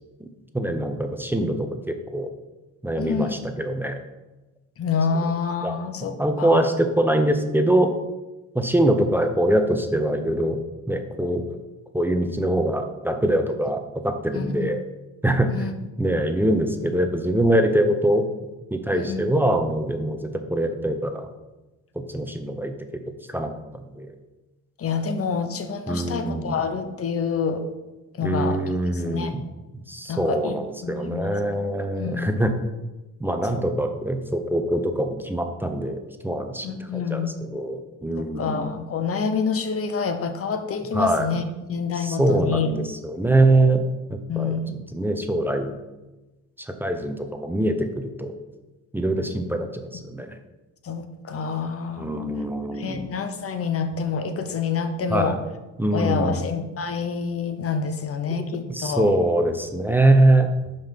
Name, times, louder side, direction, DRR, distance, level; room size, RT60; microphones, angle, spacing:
voice 1, 0.5-2.3 2.8-4.0 5.6-5.8 6.2-7.9 8.5-10.6 10.9-11.6 11.9-14.8 15.2-15.7 16.0-18.2 18.7-21.3 22.1-23.0 23.3-24.1 25.9-26.6 28.2-29.4 29.9-32.5 33.2-38.7 40.9-41.3 42.0-43.8 44.1-44.5 44.9-45.7 46.8-48.3 48.9-50.3 52.0-53.1 55.1-55.3 55.8-56.4 58.7-60.5, right 1 dB, 5° right, 6 dB, 0.8 m, -23 dB
voice 2, 3.0-3.3 4.8-6.7 14.3-14.7 15.5-15.7 18.9-19.2 24.8-27.6 28.2-28.6 28.9-29.4 30.1-31.3 32.0-32.4 33.5-33.6 36.6-37.4 38.2-41.4 41.7-42.7 44.3-44.7 50.8-52.1 52.8-55.4 55.9-59.0, left 5 dB, 50° left, 8 dB, 0.9 m, -27 dB
5.5 x 5.3 x 5.8 m, 1.1 s
cardioid pair, 90°, 30 cm